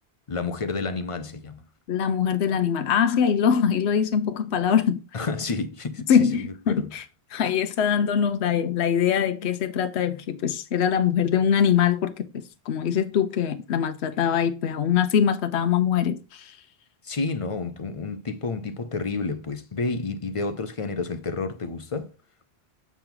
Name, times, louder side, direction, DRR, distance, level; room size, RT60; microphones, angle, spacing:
voice 1, 0.3-1.6 5.1-6.9 17.0-22.1, left 4 dB, 40° left, 0.5 m, -30 dB
voice 2, 1.9-5.0 6.1-7.0 7.3-12.3 12.7-16.6, left 8 dB, 75° left, 1.0 m, -23 dB
7.1 x 4.4 x 3.9 m
omnidirectional pair, 1.1 m